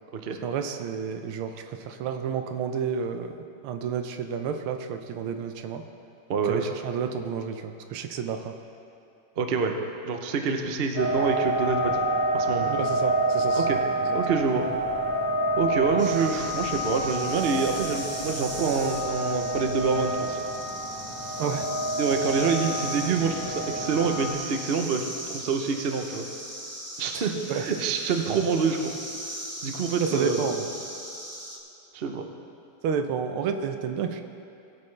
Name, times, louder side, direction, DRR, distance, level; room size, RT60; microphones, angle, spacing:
voice 1, 0.4-3.4 3.6-5.8 6.4-8.5 12.6-13.8 21.4-21.7 27.1-27.6 30.0-30.6 32.8-34.2, right 7 dB, 85° right, 7 dB, 1.6 m, -30 dB
voice 2, 6.3-6.6 9.4-9.8 10.0-12.0 12.3-12.7 13.5-13.8 14.1-14.7 15.6-20.4 22.0-26.2 27.0-28.9 29.6-30.4 31.9-32.2, right 5 dB, 65° right, 4 dB, 0.5 m, -26 dB
sound 1, 11.0-24.3, right 2 dB, 65° left, 2.8 m, -28 dB
sound 2, 16.0-31.6, equal, 15° right, 0.6 m, -39 dB
20.0 x 8.4 x 3.3 m, 2.6 s
omnidirectional pair, 2.3 m